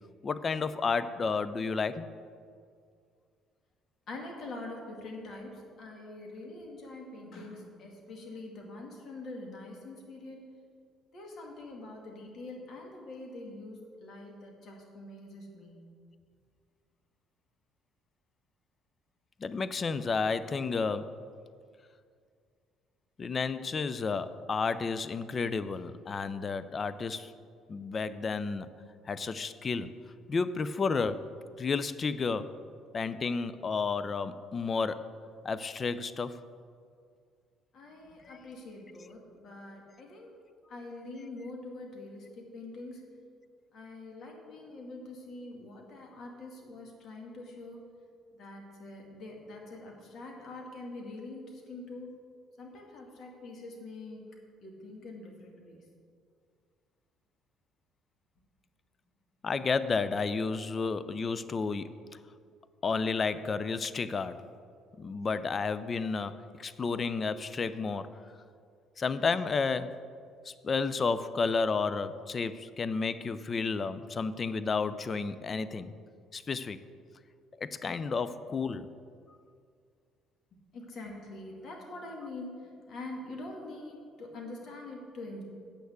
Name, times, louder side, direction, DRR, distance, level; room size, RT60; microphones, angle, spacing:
voice 1, 0.2-2.1 19.4-21.2 23.2-27.3 27.7-28.7 29.0-29.9 30.3-31.3 31.6-32.5 32.9-35.1 35.4-36.4 38.2-38.4 59.4-62.2 62.8-64.4 65.0-68.2 69.0-70.0 70.4-75.9 76.3-76.8 77.6-78.9, left 4 dB, 40° left, 14 dB, 0.5 m, -31 dB
voice 2, 4.1-10.5 11.1-15.9 37.7-40.3 40.7-43.0 43.7-47.8 48.3-52.1 52.6-54.2 54.6-55.8 80.7-85.4, left 2 dB, 60° left, 0 dB, 2.3 m, -44 dB
8.1 x 6.4 x 8.1 m, 2.2 s
hypercardioid pair, 65°, 0 cm